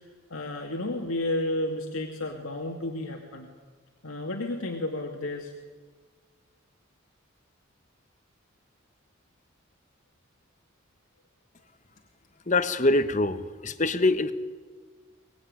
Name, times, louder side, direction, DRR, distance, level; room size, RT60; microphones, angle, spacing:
voice 1, 0.3-3.5 4.0-5.5, left 1 dB, 90° left, 1 dB, 2.6 m, -32 dB
voice 2, 12.5-14.3, left 2 dB, 35° left, 11 dB, 1.2 m, -24 dB
24.5 x 20.5 x 9.9 m, 1.5 s
head